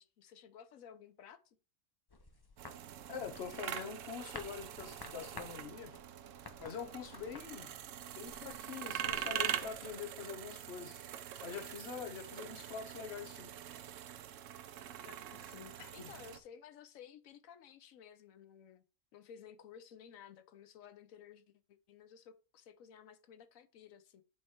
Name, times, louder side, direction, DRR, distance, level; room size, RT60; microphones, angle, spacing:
voice 1, 0.0-1.6 15.0-18.8 19.1-24.2, left 8 dB, 90° left, 1.1 m, -55 dB
sound 1, 2.1-9.9, left 3 dB, 35° left, 0.4 m, -55 dB
sound 2, 2.6-16.4, right 10 dB, 75° right, 0.9 m, -44 dB
voice 2, 3.1-5.9 6.6-7.7 8.2-11.0 11.4-13.5 15.8-16.1, left 6 dB, 55° left, 1.2 m, -45 dB
8.6 x 3.3 x 4.4 m
omnidirectional pair, 1.4 m